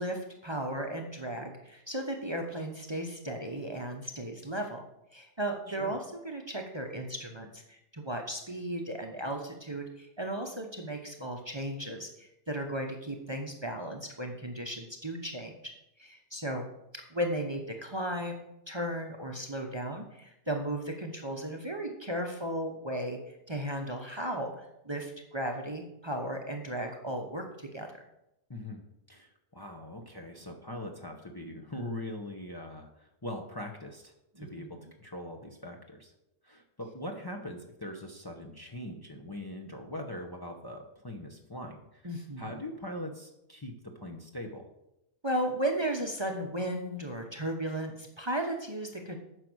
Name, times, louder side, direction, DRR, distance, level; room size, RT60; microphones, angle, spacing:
voice 1, 0.0-4.8 5.1-15.6 16.0-16.7 16.9-27.9 34.4-34.7 42.0-42.5 45.2-49.2, right 1 dB, 25° right, 3 dB, 0.9 m, -35 dB
voice 2, 28.5-28.8 29.1-36.1 36.4-44.7, left 1 dB, 20° left, 2 dB, 0.9 m, -42 dB
9.3 x 6.0 x 6.3 m, 0.85 s
omnidirectional pair, 1.2 m